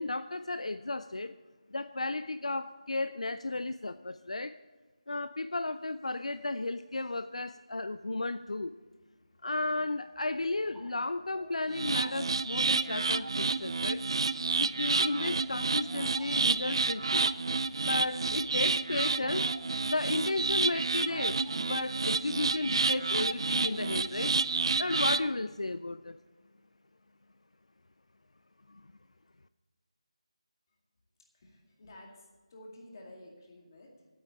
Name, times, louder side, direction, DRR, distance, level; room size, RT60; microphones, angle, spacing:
voice 1, 0.0-1.3 1.7-4.6 5.1-8.7 9.4-14.0 14.6-17.3 17.8-19.5 19.8-24.3 24.8-26.2 28.7-28.8, left 2 dB, 75° left, 13 dB, 0.4 m, -34 dB
sound 1, 10.1-24.5, right 1 dB, ahead, 1.0 m, -57 dB
sound 2, 11.7-25.3, right 4 dB, 50° right, 0.4 m, -30 dB
voice 2, 31.3-34.1, left 1 dB, 35° left, 0 dB, 2.1 m, -52 dB
8.6 x 8.2 x 8.8 m, 1.3 s
figure-of-eight pair, 160°, 3 cm